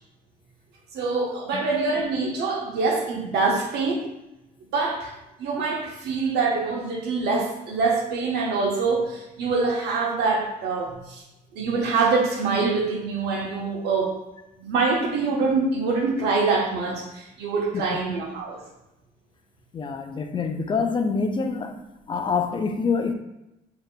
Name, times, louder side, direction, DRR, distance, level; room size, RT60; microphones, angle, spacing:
voice 1, 0.9-4.0 4.7-5.1 5.4-11.2 11.5-14.2 14.6-18.6, right 4 dB, 80° right, 1.0 m, -25 dB
voice 2, 19.7-23.1, left 5 dB, 30° left, 0.4 m, -26 dB
6.4 x 2.8 x 2.2 m
cardioid pair, 110°, 17 cm